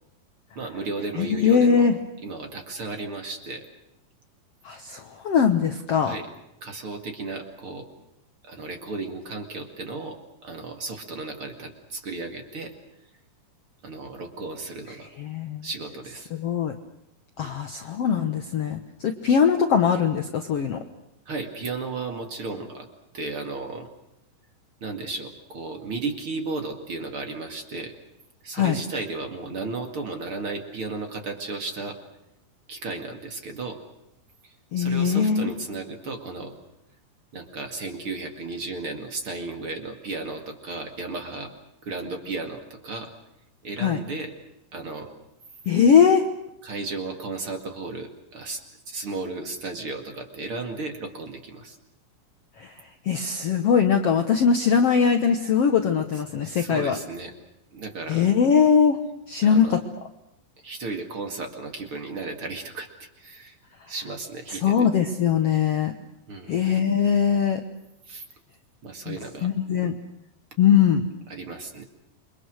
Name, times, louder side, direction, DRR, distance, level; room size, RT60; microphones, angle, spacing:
voice 1, 0.5-1.9 2.2-3.6 6.0-6.3 6.6-7.9 8.4-12.7 13.8-15.1 15.6-16.3 17.4-17.6 21.3-22.9 23.1-23.9 24.8-28.0 28.4-32.0 32.7-33.8 34.4-36.5 37.3-41.5 41.8-43.1 43.6-44.3 44.7-45.1 46.6-51.8 56.4-57.3 57.7-58.3 59.4-59.8 60.6-63.6 63.9-64.9 66.3-66.6 68.1-68.2 68.8-69.5 71.3-71.8, right 3 dB, 40° right, 5 dB, 2.7 m, -34 dB
voice 2, 1.2-1.9 4.6-6.2 15.2-15.6 16.3-16.7 17.4-20.8 28.5-28.8 34.7-35.4 43.8-44.0 45.7-46.2 52.6-52.7 53.0-57.0 58.1-59.0 59.3-59.8 64.5-65.9 66.5-67.6 69.1-69.2 69.4-70.0 70.6-71.0, left 7 dB, 60° left, 7 dB, 1.6 m, -21 dB
28.5 x 23.5 x 6.5 m, 0.85 s
omnidirectional pair, 4.2 m